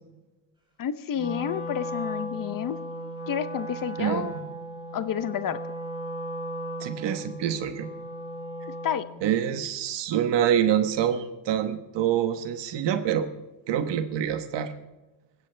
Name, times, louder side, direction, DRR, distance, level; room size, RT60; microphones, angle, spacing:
voice 1, 0.8-2.8 3.3-4.3 4.9-5.6 8.8-9.1, left 9 dB, 50° left, 13 dB, 0.9 m, -30 dB
Wind instrument woodwind instrument, 1.1-9.1, equal, 10° right, 4.6 m, -36 dB
voice 2, 4.0-4.4 6.8-7.9 9.2-13.3 13.7-14.7, right 9 dB, 75° right, 9 dB, 1.2 m, -26 dB
21.0 x 16.5 x 3.4 m, 1.1 s
cardioid pair, 120°, 43 cm